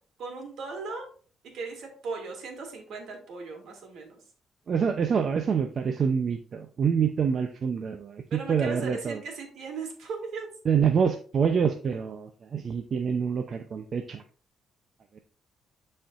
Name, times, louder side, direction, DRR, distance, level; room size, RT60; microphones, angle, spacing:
voice 1, 0.2-1.1 1.5-4.2 8.3-10.5, right 4 dB, 75° right, 2 dB, 2.4 m, -37 dB
voice 2, 4.7-8.2 8.5-9.2 10.7-14.2, right 6 dB, 50° right, 6 dB, 0.6 m, -26 dB
11.5 x 4.4 x 2.5 m, 0.42 s
cardioid pair, 90°, 0 cm